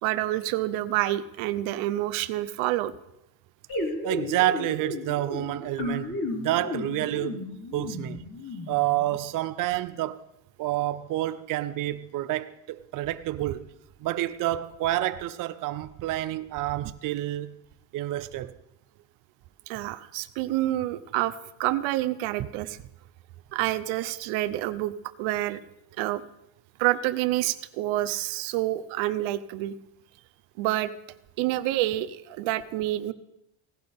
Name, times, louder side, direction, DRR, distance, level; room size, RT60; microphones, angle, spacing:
voice 1, 0.0-2.9 19.7-22.8 23.5-24.9 25.2-25.6 26.0-26.2 26.8-29.8 30.6-30.9 31.4-33.1, right 15 dB, 85° right, 0.8 m, -28 dB
sound 1, 3.7-9.2, left 2 dB, 50° left, 3.7 m, -34 dB
voice 2, 4.0-7.5 7.7-8.2 8.7-10.2 10.6-13.7 14.0-17.6 17.9-18.5 22.4-22.5, right 14 dB, 45° right, 0.5 m, -29 dB
17.0 x 12.0 x 3.5 m
cardioid pair, 140°, 46 cm